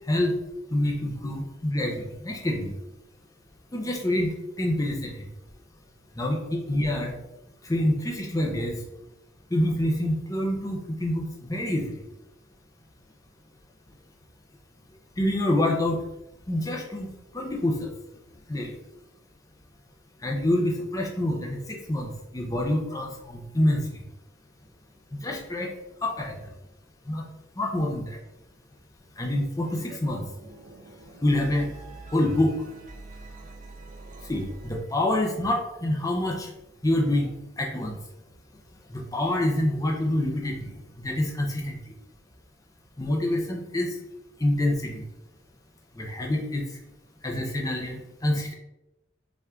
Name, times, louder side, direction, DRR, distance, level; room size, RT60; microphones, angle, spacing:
voice 1, 0.7-2.7 3.7-5.3 6.2-7.1 7.6-8.8 9.5-11.2 11.5-11.9 15.2-16.0 16.5-17.9 18.5-18.8 20.2-23.8 25.1-25.7 26.0-26.4 27.1-27.2 27.6-28.2 29.2-30.2 31.2-31.7 32.1-32.5 34.3-36.5 36.8-38.0 38.9-41.8 43.0-44.0 44.4-45.0 46.0-46.7 47.2-48.5, left 1 dB, 15° left, 0 dB, 0.5 m, -26 dB
sound 1, 29.6-30.0 30.2-35.2, right 3 dB, 40° right, 0.4 m, -45 dB
5.6 x 2.5 x 3.5 m, 0.93 s
head